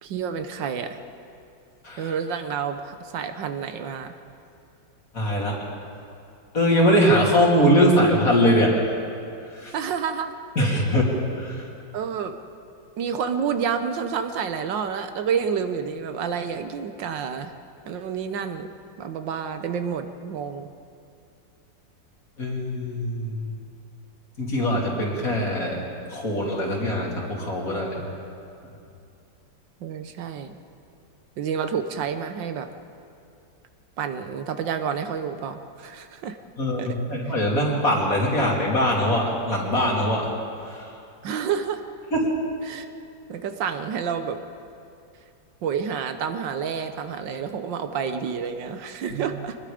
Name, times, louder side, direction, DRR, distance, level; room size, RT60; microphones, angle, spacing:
voice 1, 0.0-1.0 2.0-4.1 9.7-10.3 11.9-12.4 13.0-17.5 17.9-18.7 19.0-20.7 29.8-30.6 31.4-32.7 34.0-36.4 36.8-37.0 41.2-41.8 42.7-42.9 43.3-44.4 45.6-49.6, right 7 dB, 75° right, 8 dB, 1.6 m, -29 dB
voice 2, 5.1-5.6 6.5-8.8 9.5-9.7 10.5-11.7 22.4-23.5 24.4-25.8 26.1-28.0 36.6-40.3 40.6-40.9 42.1-42.3 49.1-49.2, equal, 45° left, -2 dB, 3.5 m, -22 dB
25.5 x 20.0 x 5.1 m, 2.6 s
omnidirectional pair, 2.0 m